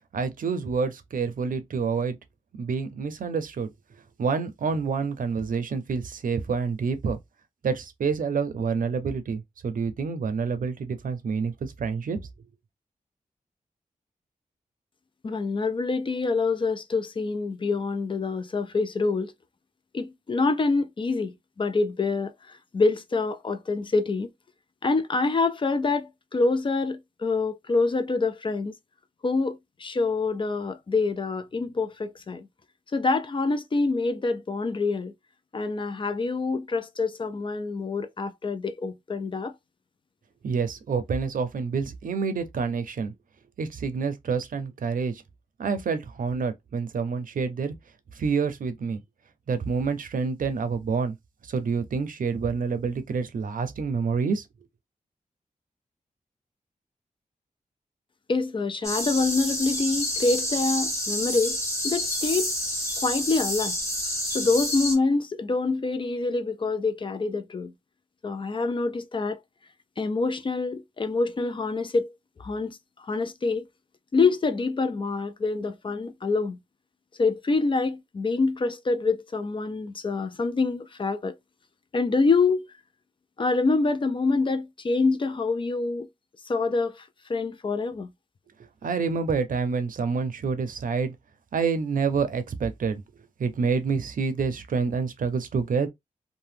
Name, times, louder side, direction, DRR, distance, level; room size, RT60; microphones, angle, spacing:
voice 1, 0.1-2.2 2.6-3.7 4.2-7.2 7.6-12.2 40.4-43.1 43.6-45.2 45.6-47.7 48.1-49.0 49.5-51.2 51.4-54.4 88.8-91.1 91.5-93.0 93.4-95.9, right 5 dB, 75° right, 0.5 m, -27 dB
voice 2, 15.2-19.3 19.9-24.3 24.8-28.7 29.2-32.5 32.9-35.1 35.5-39.5 58.3-61.6 61.8-62.5 63.0-63.8 64.3-67.7 68.2-69.4 70.0-72.1 72.4-73.6 74.1-76.6 77.2-81.4 81.9-82.7 83.4-86.1 86.5-87.0 87.3-88.1, left 3 dB, 35° left, 0.4 m, -26 dB
sound 1, 58.8-65.0, left 1 dB, 20° left, 1.3 m, -29 dB
2.8 x 2.1 x 3.3 m
wide cardioid pair, 115°, 14 cm